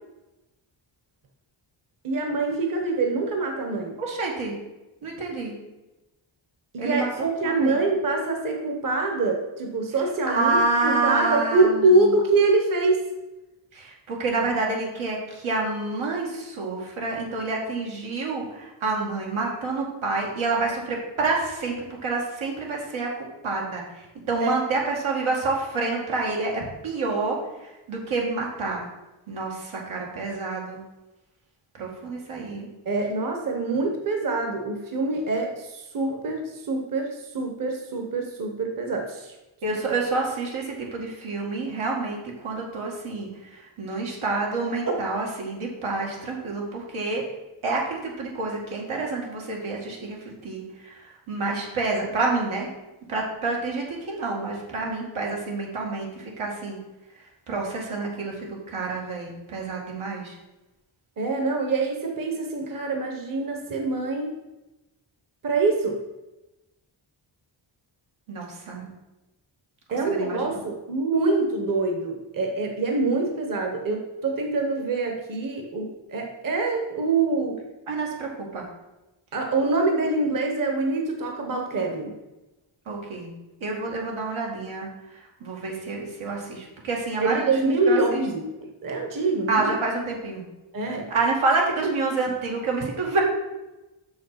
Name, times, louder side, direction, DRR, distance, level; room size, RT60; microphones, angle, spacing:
voice 1, 2.0-4.0 6.7-13.0 24.4-24.5 32.8-39.4 61.2-64.3 65.4-66.0 69.9-77.6 79.3-82.1 87.2-89.7 90.7-91.1, right 3 dB, 45° right, 3 dB, 1.1 m, -25 dB
voice 2, 4.0-4.6 5.0-5.6 6.8-7.8 10.3-12.1 13.7-28.9 29.3-30.8 31.8-32.7 39.6-47.3 47.6-52.7 53.1-56.8 57.5-60.4 68.3-68.9 69.9-70.6 77.9-78.6 82.9-83.3 83.6-84.9 85.4-88.2 89.5-90.4 91.1-93.2, right 3 dB, 85° right, -1 dB, 2.1 m, -28 dB
6.5 x 6.2 x 5.7 m, 1.0 s
wide cardioid pair, 160°, 47 cm